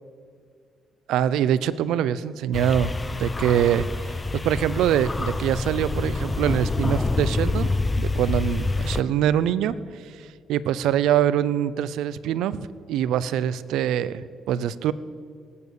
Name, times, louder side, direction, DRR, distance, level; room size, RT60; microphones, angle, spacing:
voice 1, 1.1-14.9, right 10 dB, 85° right, 17 dB, 0.5 m, -24 dB
sound 1, 2.5-9.0, left 3 dB, 20° left, 0.6 m, -26 dB
19.0 x 8.5 x 6.9 m, 2.2 s
cardioid pair, 90°, 0 cm